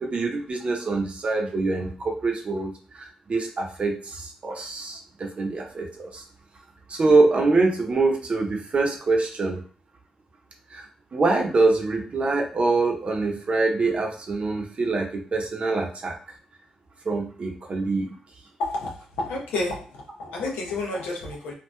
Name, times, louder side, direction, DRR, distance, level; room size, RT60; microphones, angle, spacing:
voice 1, 0.0-6.2 6.9-9.6 10.7-10.8 11.1-16.2 17.0-18.1, right 3 dB, 45° right, 2 dB, 0.7 m, -24 dB
voice 2, 18.6-19.9 20.2-21.5, left 2 dB, 90° left, 0 dB, 0.7 m, -30 dB
3.0 x 2.6 x 2.2 m, 0.42 s
supercardioid pair, 55°, 3 cm